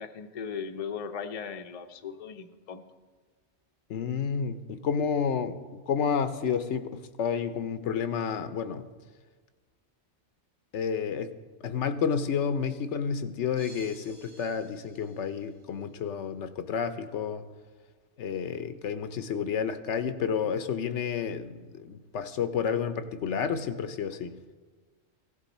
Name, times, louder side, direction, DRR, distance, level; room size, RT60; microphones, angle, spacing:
voice 1, 0.0-2.8, left 6 dB, 40° left, 7 dB, 0.6 m, -38 dB
voice 2, 3.9-8.9 10.7-11.3 11.6-17.4 18.2-24.4, left 6 dB, 80° left, 10 dB, 1.0 m, -30 dB
sound 1, 13.6-15.8, right 3 dB, 25° right, 1.7 m, -54 dB
16.5 x 11.0 x 4.2 m, 1.4 s
omnidirectional pair, 1.2 m